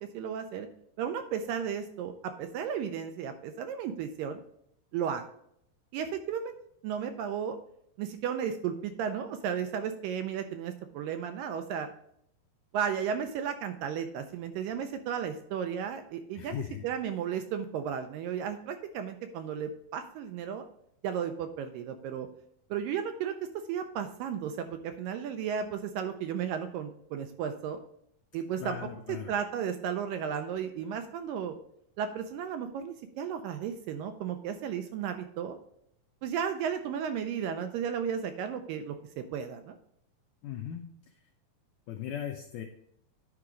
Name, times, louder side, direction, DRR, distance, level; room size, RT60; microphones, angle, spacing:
voice 1, 0.1-0.7 1.0-4.4 4.9-5.2 5.9-6.5 6.8-7.6 8.0-11.9 12.7-20.7 21.0-22.3 22.7-27.8 28.3-28.8 29.1-31.6 32.0-35.6 36.2-39.8, right 8 dB, 80° right, 7 dB, 2.0 m, -34 dB
voice 2, 16.4-16.9 28.6-29.3 40.4-41.2 41.9-42.6, left 10 dB, 85° left, 3 dB, 1.8 m, -38 dB
10.5 x 4.8 x 3.8 m, 0.71 s
omnidirectional pair, 4.3 m